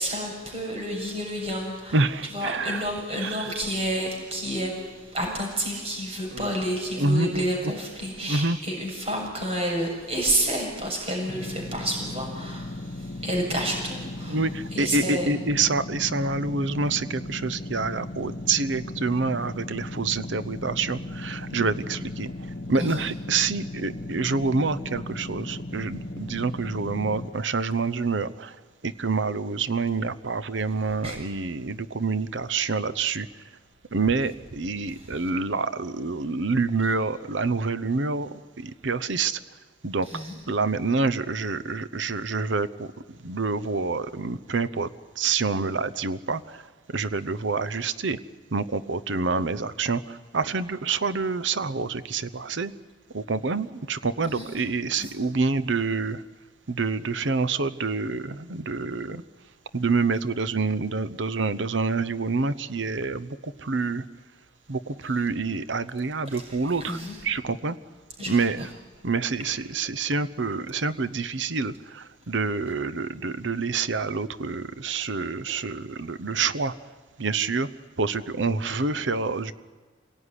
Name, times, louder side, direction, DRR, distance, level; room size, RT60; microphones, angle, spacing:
voice 1, 0.0-2.0 2.3-4.8 5.1-12.7 13.2-14.4 14.7-15.3 22.8-23.0 31.0-31.2 40.1-40.4 54.3-54.5 54.9-55.1 66.3-67.2 68.2-68.5, right 1 dB, 30° right, 0 dB, 6.8 m, -30 dB
voice 2, 1.9-2.8 3.2-3.5 6.3-6.6 7.0-7.5 8.2-8.6 14.3-22.3 22.7-28.6 28.8-33.3 33.9-39.4 39.8-40.1 40.5-44.9 45.2-46.6 46.9-48.2 48.5-52.7 53.1-56.2 56.7-59.2 59.7-64.1 64.7-67.8 68.3-68.7 69.0-76.7 77.2-77.7 78.0-79.5, right 4 dB, 75° right, 13 dB, 0.9 m, -27 dB
sound 1, 11.3-27.3, left 2 dB, 55° left, 1.2 m, -36 dB
27.0 x 18.0 x 10.0 m, 1.4 s
head